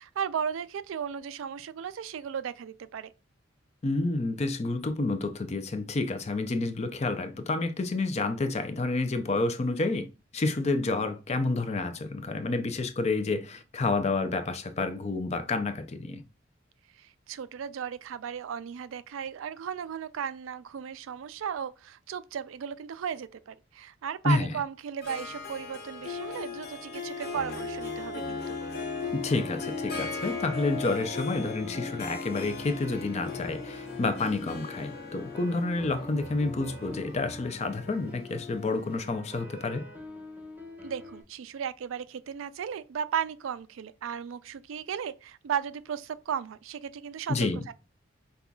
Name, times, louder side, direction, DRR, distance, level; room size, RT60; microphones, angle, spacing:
voice 1, 0.0-3.1 17.0-28.6 40.8-47.7, right 8 dB, 75° right, 0.4 m, -35 dB
voice 2, 3.8-10.1 10.3-16.2 24.2-24.6 29.1-39.9 47.3-47.6, left 3 dB, 35° left, 0.5 m, -29 dB
Harp, 25.0-38.6, left 4 dB, 55° left, 0.8 m, -38 dB
sound 1, 27.3-41.2, left 1 dB, 10° right, 0.8 m, -44 dB
5.4 x 2.3 x 2.3 m
head